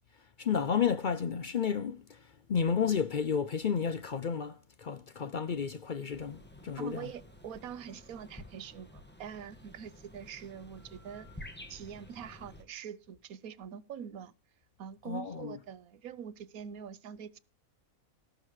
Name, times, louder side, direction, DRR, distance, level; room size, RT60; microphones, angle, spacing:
voice 1, 0.4-7.1 15.1-15.6, left 7 dB, 55° left, 0.5 m, -32 dB
sound 1, 6.1-12.6, left 1 dB, 10° left, 1.4 m, -51 dB
voice 2, 6.8-11.3 11.7-14.3 14.8-17.4, right 8 dB, 90° right, 1.2 m, -44 dB
18.0 x 6.7 x 3.1 m
omnidirectional pair, 1.5 m